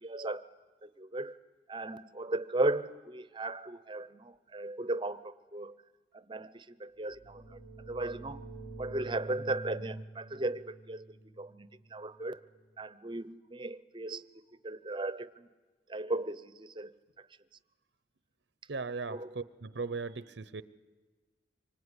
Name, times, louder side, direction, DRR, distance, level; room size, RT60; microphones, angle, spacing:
voice 1, 0.0-0.4 0.8-1.3 1.7-5.7 6.1-7.6 7.9-8.4 8.8-12.4 12.8-14.2 14.6-15.5 15.9-16.9 19.1-19.4, right 2 dB, 25° right, 15 dB, 0.8 m, -36 dB
sound 1, 7.0-12.6, right 2 dB, 55° left, 3.9 m, -47 dB
voice 2, 18.7-20.6, right 4 dB, 70° right, 15 dB, 0.8 m, -38 dB
25.0 x 23.5 x 9.8 m, 1.3 s
head